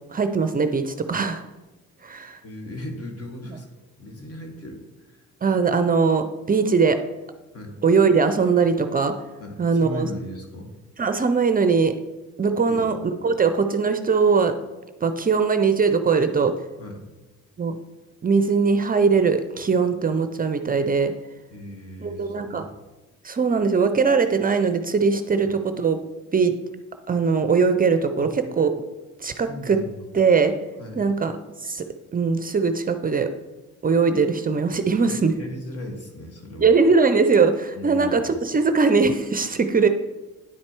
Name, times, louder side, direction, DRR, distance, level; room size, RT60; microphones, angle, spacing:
voice 1, 0.1-1.4 2.0-2.4 3.5-3.6 5.4-7.0 7.8-9.2 9.6-10.1 11.0-11.9 12.4-14.5 15.0-16.5 17.6-17.8 18.2-21.1 22.0-22.6 23.2-26.0 26.3-26.5 27.1-28.7 29.2-29.8 30.1-30.5 31.0-31.3 31.6-31.8 32.1-33.3 33.8-35.3 36.6-39.9, right 5 dB, 30° right, 8 dB, 0.5 m, -20 dB
voice 2, 2.4-3.7 4.0-5.2 7.5-7.8 9.4-10.7 12.7-13.3 16.8-17.0 21.5-22.7 25.3-25.5 28.2-28.3 29.3-30.1 30.8-31.1 35.1-36.7 37.7-38.2, left 1 dB, 50° left, 2 dB, 1.7 m, -37 dB
9.8 x 4.4 x 4.4 m, 1.1 s
cardioid pair, 90°, 30 cm